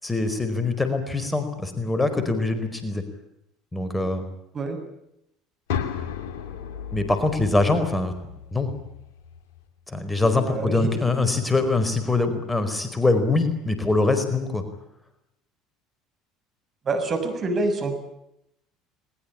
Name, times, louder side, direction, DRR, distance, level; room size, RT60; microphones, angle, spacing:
voice 1, 0.0-3.0 3.7-4.2 6.9-8.1 8.5-8.7 9.9-14.6, left 3 dB, 10° left, 9 dB, 4.6 m, -23 dB
sound 1, 5.7-9.7, left 8 dB, 70° left, 2.6 m, -34 dB
voice 2, 10.5-10.9 16.8-17.9, right 3 dB, 35° right, 7 dB, 6.5 m, -26 dB
21.5 x 21.0 x 8.7 m, 0.81 s
hypercardioid pair, 70°, 0 cm